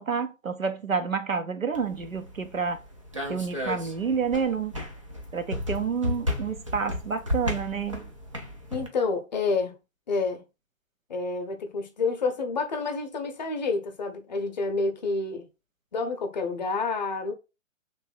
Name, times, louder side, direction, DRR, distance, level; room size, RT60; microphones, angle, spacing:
voice 1, 0.0-2.8 3.3-4.7 5.3-8.1, right 6 dB, 90° right, 0.7 m, -29 dB
sound 1, 1.7-8.9, left 1 dB, 25° right, 0.4 m, -34 dB
voice 2, 8.7-9.8 10.1-10.4 11.1-15.5 15.9-17.3, left 3 dB, 35° left, 0.6 m, -29 dB
3.1 x 2.7 x 4.4 m
figure-of-eight pair, 130°, 39 cm